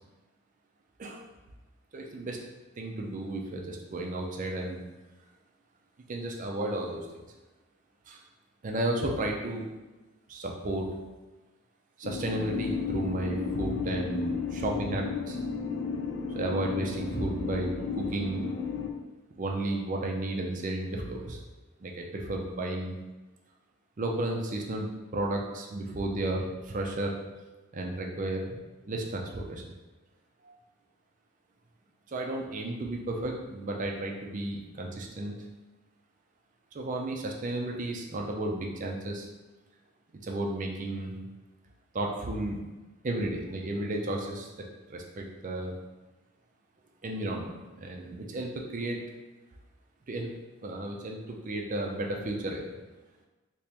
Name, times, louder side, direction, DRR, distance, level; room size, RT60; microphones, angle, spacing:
voice 1, 1.9-2.4 2.8-4.8 6.1-7.2 8.1-8.2 8.6-9.6 10.3-10.9 12.0-15.4 16.3-18.4 19.4-21.4 21.8-22.9 24.0-27.2 27.7-29.7 30.4-30.5 32.1-35.3 36.7-39.3 40.2-41.2 41.9-42.6 43.0-44.5 44.9-45.7 47.0-49.0 50.1-50.3 50.6-52.6, right 1 dB, 35° right, 1 dB, 0.4 m, -33 dB
sound 1, 12.0-18.9, left 5 dB, 55° left, 0.4 m, -33 dB
2.9 x 2.9 x 3.4 m, 1.2 s
head